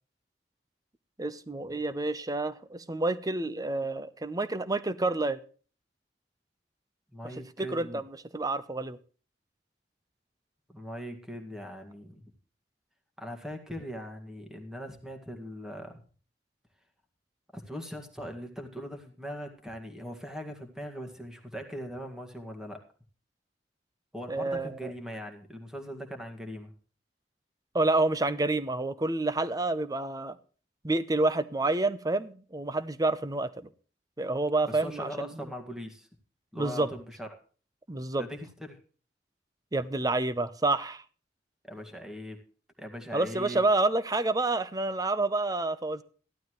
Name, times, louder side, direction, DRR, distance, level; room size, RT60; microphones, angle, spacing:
voice 1, 1.2-5.4 7.2-8.1 8.3-9.0 24.3-24.9 27.7-30.4 30.8-33.7 34.2-35.3 36.6-36.9 37.9-38.2 39.7-41.0 43.1-46.0, right 2 dB, 20° right, 0.7 m, -28 dB
voice 2, 7.1-8.0 10.7-12.3 13.2-16.0 17.5-22.8 24.1-26.7 34.7-36.1 36.5-37.3 38.2-38.8 41.7-42.4 42.8-43.6, equal, 5° right, 2.0 m, -40 dB
14.5 x 12.0 x 3.1 m
head